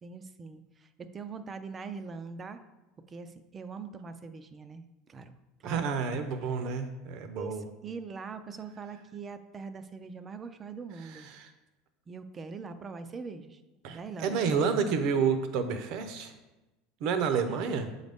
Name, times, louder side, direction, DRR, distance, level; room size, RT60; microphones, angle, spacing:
voice 1, 0.0-2.6 3.1-5.4 5.6-5.9 6.4-6.6 7.3-7.6 7.8-11.3 12.1-13.6 13.9-14.4, right 5 dB, 20° right, 10 dB, 0.4 m, -42 dB
voice 2, 5.6-7.6 11.0-11.5 13.8-16.3 17.0-17.9, right 6 dB, 50° right, 8 dB, 0.6 m, -30 dB
7.2 x 3.9 x 3.5 m, 1.0 s
supercardioid pair, 155°, 0 cm